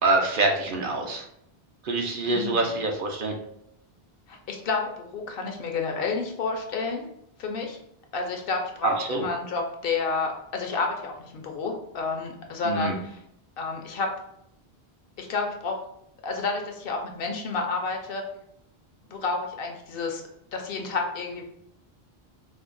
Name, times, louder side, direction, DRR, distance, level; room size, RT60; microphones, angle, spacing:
voice 1, 0.0-1.2 1.8-3.3 8.8-9.2 12.6-13.0, right 2 dB, 60° right, 2 dB, 0.7 m, -25 dB
voice 2, 2.2-2.7 4.3-7.1 7.4-7.8 8.1-13.1 13.6-14.1 15.2-15.8 16.2-18.2 19.1-20.2 20.5-21.4, left 4 dB, 65° left, 2 dB, 0.7 m, -30 dB
4.4 x 2.0 x 2.5 m, 0.76 s
omnidirectional pair, 1.1 m